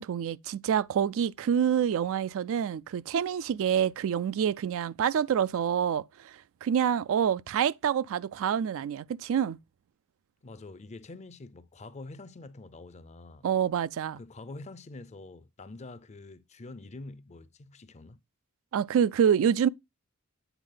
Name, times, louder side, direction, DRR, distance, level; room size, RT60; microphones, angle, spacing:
voice 1, 0.0-9.6 13.4-14.2 18.7-19.7, right 8 dB, 65° right, 0.3 m, -27 dB
voice 2, 10.4-13.5 14.2-18.2, left 2 dB, 30° left, 0.5 m, -46 dB
8.1 x 4.2 x 3.8 m
head